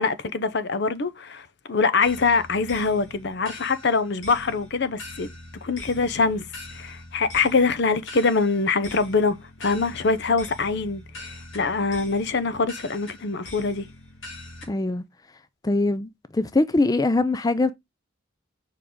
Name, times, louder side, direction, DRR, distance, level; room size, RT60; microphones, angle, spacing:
voice 1, 0.0-5.3 5.6-6.5 6.7-13.9, left 4 dB, 55° left, 0.7 m, -24 dB
sound 1, 2.0-14.7, left 1 dB, 80° left, 3.0 m, -43 dB
voice 2, 14.7-15.0 15.6-17.7, left 2 dB, 20° left, 0.4 m, -22 dB
7.0 x 4.8 x 3.7 m
head